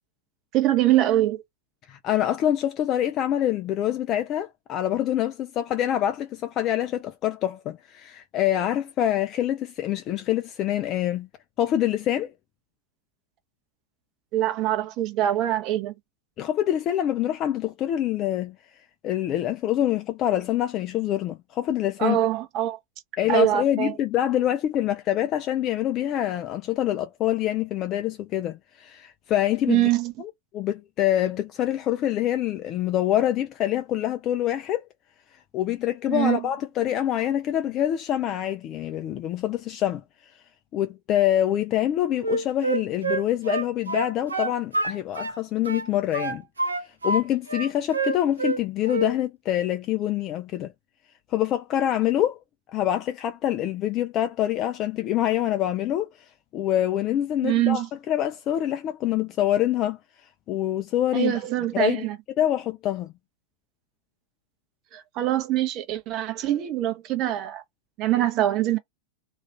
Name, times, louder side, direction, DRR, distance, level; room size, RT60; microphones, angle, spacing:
voice 1, 0.5-1.4 14.3-15.9 22.0-22.8 23.3-23.9 29.7-30.1 36.1-36.5 57.4-57.9 61.1-62.2 64.9-67.6 68.0-68.8, right 13 dB, 40° right, 0.7 m, -23 dB
voice 2, 1.8-11.3 11.6-12.3 16.4-18.6 19.0-22.2 23.2-29.9 30.5-34.9 35.5-40.4 40.7-46.4 46.8-50.7 51.3-52.4 52.7-61.3 61.7-62.1 62.4-63.1, left 12 dB, 35° left, 0.3 m, -25 dB
Wind instrument woodwind instrument, 42.2-45.4 45.7-47.2 47.5-48.6 48.9-49.1, right 3 dB, 75° right, 0.6 m, -27 dB
2.4 x 2.4 x 3.3 m
figure-of-eight pair, 90°, 0 cm